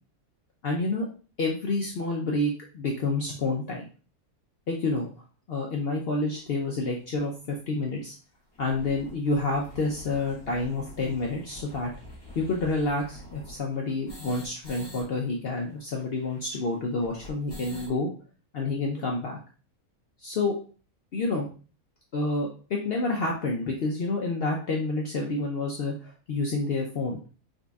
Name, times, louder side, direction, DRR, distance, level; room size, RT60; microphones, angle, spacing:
voice 1, 0.6-1.0 1.4-3.8 4.7-5.1 5.5-8.1 8.6-11.9 12.3-18.1 18.5-19.4 20.2-20.5 21.1-21.5 22.1-27.2, left 3 dB, 65° left, -1 dB, 0.6 m, -29 dB
sound 1, 6.3-6.4 7.1-7.2 7.5-7.6 7.9-8.0 8.3-15.0 15.3-15.4 15.6-18.0, equal, 20° left, 1.0 m, -46 dB
3.9 x 2.6 x 2.3 m, 0.37 s
omnidirectional pair, 1.6 m